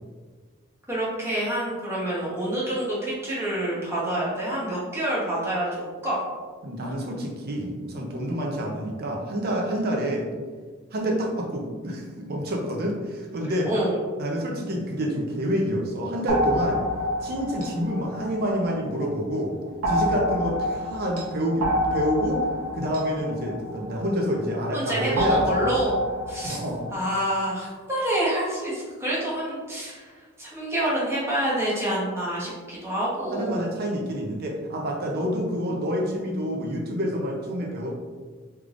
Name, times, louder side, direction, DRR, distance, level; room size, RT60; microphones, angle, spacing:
voice 1, 0.9-6.2 13.7-14.0 24.7-25.9 26.3-26.6 26.9-30.1 30.4-33.7, right 1 dB, 10° right, -7 dB, 1.0 m, -27 dB
voice 2, 6.6-10.3 10.9-13.7 14.2-16.8 17.2-19.5 19.9-22.4 22.7-25.7 26.4-26.9 33.3-37.9, equal, 50° right, 0 dB, 0.6 m, -28 dB
sound 1, 16.3-19.0 19.8-24.4 25.2-26.9, left 1 dB, 80° right, 0.9 m, -28 dB
3.4 x 3.3 x 2.5 m, 1.5 s
head